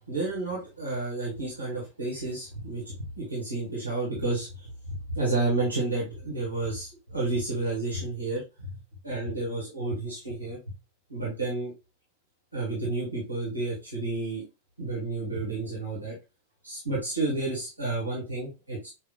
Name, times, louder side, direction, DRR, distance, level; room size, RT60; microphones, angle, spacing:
voice 1, 0.0-8.7 9.0-10.6 11.1-11.7 12.5-14.4 14.8-16.2 16.6-18.9, right 2 dB, 90° right, -6 dB, 1.7 m, -31 dB
5.8 x 2.8 x 2.2 m, 0.27 s
figure-of-eight pair, 90°, 0 cm